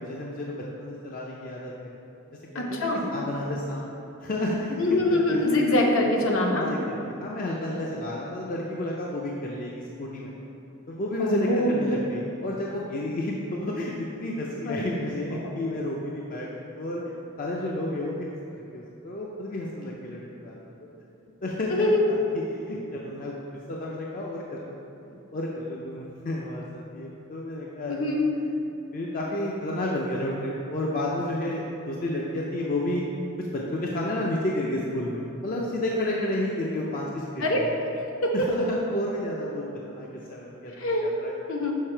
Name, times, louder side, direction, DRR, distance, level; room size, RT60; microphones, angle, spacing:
voice 1, 0.0-1.9 2.5-3.8 4.2-5.7 6.5-10.3 10.9-16.5 16.8-17.0 17.4-20.6 21.4-23.4 23.7-24.8 25.1-28.1 28.9-33.0 33.4-37.6 38.3-41.3, left 1 dB, 40° left, -3 dB, 0.4 m, -31 dB
voice 2, 2.5-3.0 4.8-6.7 11.2-11.7 14.6-14.8 15.4-15.5 21.7-22.1 27.9-28.3 37.4-37.7 38.2-38.7 40.8-41.1 41.5-41.7, left 1 dB, 65° left, -1 dB, 0.9 m, -24 dB
6.5 x 3.9 x 4.4 m, 2.8 s
head